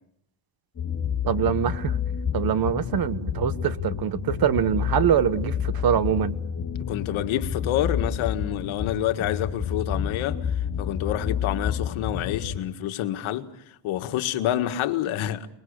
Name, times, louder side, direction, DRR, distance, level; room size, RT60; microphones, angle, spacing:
sound 1, 0.8-12.6, left 7 dB, 40° left, 3.5 m, -29 dB
voice 1, 1.2-2.0 2.3-6.4, right 9 dB, 50° right, 1.3 m, -24 dB
voice 2, 6.9-13.5 13.8-15.5, left 12 dB, 85° left, 1.9 m, -28 dB
29.0 x 21.5 x 6.6 m
cardioid pair, 135°, 48 cm